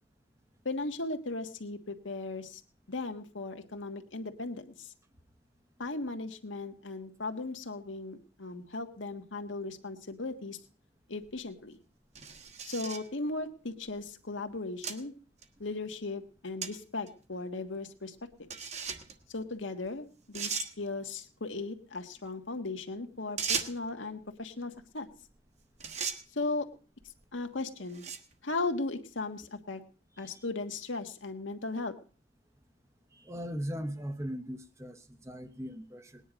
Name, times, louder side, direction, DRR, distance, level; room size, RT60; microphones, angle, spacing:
voice 1, 0.6-2.6 2.9-4.9 5.8-10.6 11.1-11.8 12.6-15.1 15.6-18.7 19.3-25.1 26.3-26.7 27.3-28.1 28.4-29.8 30.2-31.9, left 3 dB, 90° left, 6 dB, 1.4 m, -37 dB
sound 1, 11.2-11.3 12.1-13.1 13.9-14.0 14.8-15.0 15.4-15.5 16.6-16.7 17.1-17.2 18.5-19.1 19.9-20.0 20.3-20.7 23.4-23.9 25.3-25.5 25.8-26.2 27.0-27.2 27.9-28.3, right 6 dB, 35° right, 1.2 m, -36 dB
voice 2, 33.1-36.2, equal, 15° right, 9 dB, 0.8 m, -39 dB
19.5 x 10.0 x 5.1 m, 0.38 s
head